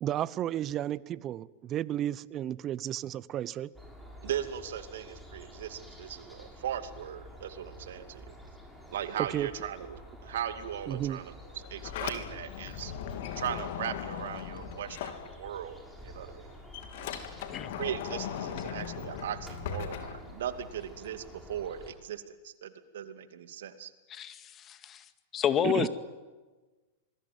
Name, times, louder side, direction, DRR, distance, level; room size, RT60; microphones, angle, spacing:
voice 1, 0.0-3.7 9.2-9.5 10.9-11.2 25.6-25.9, right 12 dB, 35° right, 20 dB, 0.9 m, -33 dB
sound 1, 3.7-21.9, left 1 dB, ahead, 6.7 m, -49 dB
voice 2, 4.2-8.3 8.9-12.9 13.4-15.8 16.0-16.5 17.8-23.9, right 10 dB, 70° right, 10 dB, 2.4 m, -38 dB
Sliding door, 11.5-15.8 16.1-20.8, left 8 dB, 60° left, 3.3 m, -39 dB
voice 3, 24.1-25.0 25.3-25.9, left 8 dB, 30° left, 11 dB, 2.0 m, -30 dB
26.5 x 21.0 x 9.5 m, 1.3 s
hypercardioid pair, 105°, 0 cm